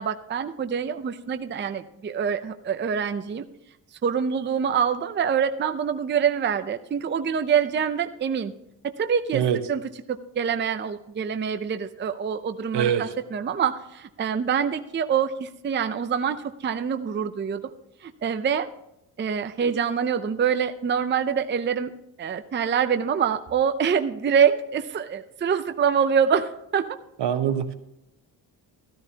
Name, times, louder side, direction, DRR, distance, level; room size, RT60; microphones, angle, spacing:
voice 1, 0.0-3.5 4.0-8.5 9.0-9.4 9.7-9.8 10.1-17.7 18.0-18.7 19.2-21.9 22.2-27.0, right 7 dB, 25° right, 8 dB, 0.5 m, -25 dB
voice 2, 12.7-13.1 27.2-27.7, right 9 dB, 70° right, 9 dB, 1.1 m, -24 dB
13.0 x 13.0 x 2.8 m, 0.84 s
cardioid pair, 120°, 43 cm